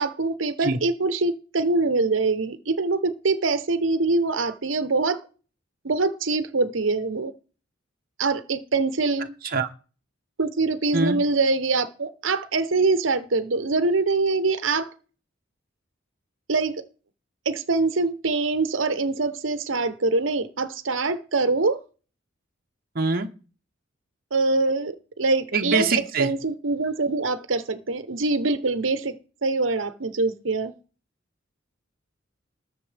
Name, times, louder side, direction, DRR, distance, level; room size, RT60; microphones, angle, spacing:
voice 1, 0.0-5.2 5.8-7.3 8.2-9.4 10.4-14.9 16.5-16.8 17.4-21.8 24.3-30.7, right 3 dB, 75° right, 11 dB, 1.0 m, -24 dB
voice 2, 22.9-23.3 25.5-26.3, right 4 dB, 50° right, 4 dB, 1.0 m, -23 dB
20.0 x 6.9 x 3.4 m, 0.37 s
head